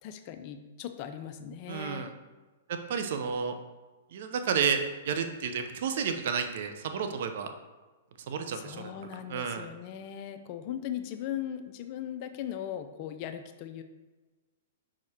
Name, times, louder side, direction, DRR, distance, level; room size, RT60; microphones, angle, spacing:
voice 1, 0.0-2.1 8.5-13.8, left 10 dB, 45° left, 7 dB, 0.5 m, -38 dB
voice 2, 1.7-2.1 2.7-3.5 4.1-4.8 5.0-7.5 8.3-8.9 9.3-9.7, right 6 dB, 60° right, 7 dB, 0.7 m, -31 dB
5.8 x 5.0 x 4.3 m, 1.2 s
hypercardioid pair, 125°, 0 cm